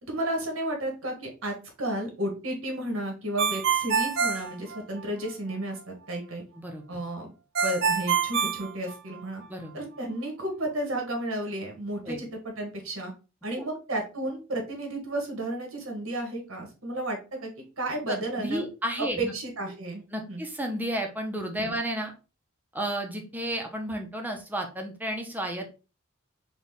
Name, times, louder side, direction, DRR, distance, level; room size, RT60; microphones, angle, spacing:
voice 1, 0.0-6.4 6.9-7.3 7.6-9.4 9.7-13.1 13.4-17.5 17.8-18.6 19.2-20.4 21.6-21.7, right 1 dB, 80° right, 2 dB, 1.4 m, -32 dB
Ringtone, 3.4-5.3 7.6-9.4, right 6 dB, 55° right, 0.5 m, -26 dB
voice 2, 9.5-9.8 12.0-12.2 13.6-13.7 18.1-19.3 20.1-22.1 22.7-25.7, right 1 dB, 10° right, 3 dB, 0.7 m, -32 dB
4.1 x 2.4 x 3.5 m, 0.32 s
head